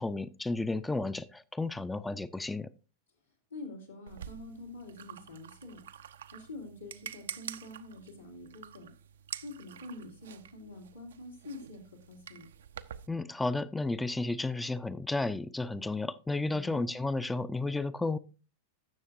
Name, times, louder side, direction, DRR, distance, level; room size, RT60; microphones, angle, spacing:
voice 1, 0.0-2.7 13.1-18.2, left 2 dB, 5° left, 0.4 m, -32 dB
voice 2, 3.5-5.8 6.3-8.9 9.4-12.5 16.4-16.8, left 2 dB, 85° left, 2.6 m, -46 dB
sound 1, 4.1-13.1, right 9 dB, 65° right, 0.5 m, -47 dB
16.5 x 7.0 x 2.5 m
figure-of-eight pair, 90°, 0 cm